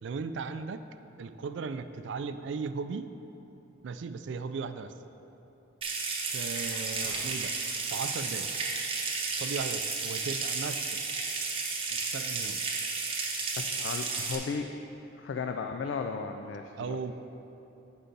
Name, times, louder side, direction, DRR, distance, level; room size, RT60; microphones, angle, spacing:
voice 1, 0.0-0.8 1.2-3.1 3.8-4.9 6.3-7.5 7.9-8.5 9.3-11.0 11.9-12.6 16.8-17.1, right 5 dB, 70° right, 11 dB, 0.3 m, -37 dB
Water tap faucet / Sink (filling or washing) / Trickle dribble, 5.8-14.4, right 4 dB, 30° right, 0.9 m, -33 dB
sound 1, 6.2-10.0 10.7-11.0, equal, 45° left, 1.4 m, -51 dB
voice 2, 13.6-14.7 15.1-17.0, left 5 dB, 70° left, 5 dB, 0.3 m, -35 dB
8.2 x 5.5 x 3.9 m, 3.0 s
head